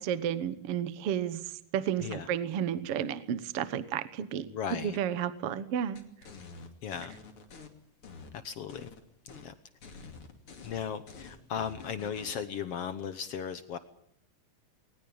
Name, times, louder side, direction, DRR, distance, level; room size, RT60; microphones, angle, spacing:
voice 1, 0.0-6.0, right 9 dB, 60° right, 14 dB, 1.9 m, -32 dB
voice 2, 4.5-5.0 6.8-7.1 8.4-8.9 9.4-9.5 10.6-13.8, left 7 dB, 60° left, 12 dB, 1.7 m, -36 dB
sound 1, 5.9-7.7 8.0-9.0 9.3-9.5 9.8-12.4, left 4 dB, 45° left, 3.3 m, -48 dB
21.0 x 19.5 x 8.8 m, 0.72 s
omnidirectional pair, 3.7 m